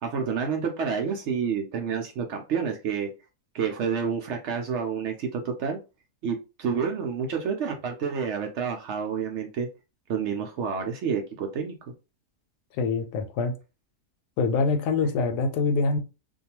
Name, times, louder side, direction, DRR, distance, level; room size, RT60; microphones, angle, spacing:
voice 1, 0.0-3.1 3.5-5.8 6.2-9.7 10.1-11.7, right 6 dB, 75° right, 0.6 m, -29 dB
voice 2, 12.7-13.5 14.4-16.0, left 4 dB, 90° left, 1.2 m, -25 dB
2.6 x 2.3 x 2.8 m
omnidirectional pair, 1.7 m